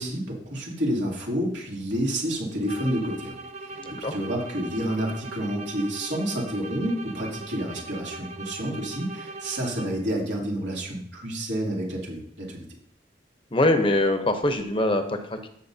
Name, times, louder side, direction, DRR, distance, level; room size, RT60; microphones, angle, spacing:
voice 1, 0.0-3.3 3.7-3.8 4.1-12.7, equal, 85° right, -3 dB, 2.8 m, -29 dB
sound 1, 2.6-10.2, right 3 dB, 40° right, 0.5 m, -40 dB
voice 2, 3.7-4.1 13.5-15.5, left 1 dB, 30° left, 7 dB, 0.8 m, -23 dB
14.5 x 6.4 x 2.8 m, 0.69 s
head